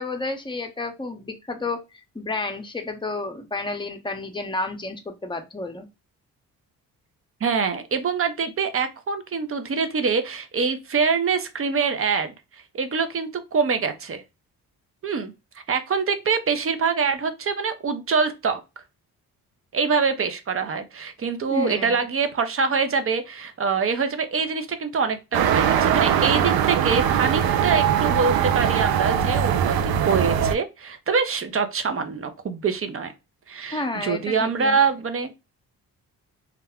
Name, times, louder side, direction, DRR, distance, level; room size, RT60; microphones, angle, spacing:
voice 1, 0.0-1.8 2.1-5.9 21.5-22.0 33.7-34.8, left 2 dB, 15° left, 0.7 m, -31 dB
voice 2, 7.4-12.3 12.7-14.2 15.0-15.3 15.7-18.6 19.7-33.1 33.5-35.3, right 5 dB, 40° right, 0.6 m, -25 dB
sound 1, 25.3-30.5, right 9 dB, 80° right, 0.5 m, -21 dB
2.4 x 2.1 x 3.4 m
supercardioid pair, 65°, 36 cm